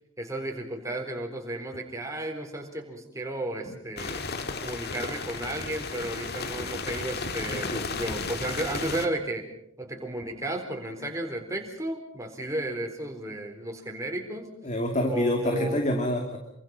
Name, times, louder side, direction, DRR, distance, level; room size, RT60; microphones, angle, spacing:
voice 1, 0.2-4.2 4.6-9.5 9.8-14.5 15.1-16.1, right 1 dB, 15° right, 3 dB, 4.0 m, -33 dB
sound 1, 4.0-9.1, left 4 dB, 50° left, 1.9 m, -34 dB
voice 2, 7.5-7.8 14.6-16.4, equal, 35° left, 3 dB, 2.4 m, -27 dB
27.5 x 24.5 x 5.5 m, 0.76 s
head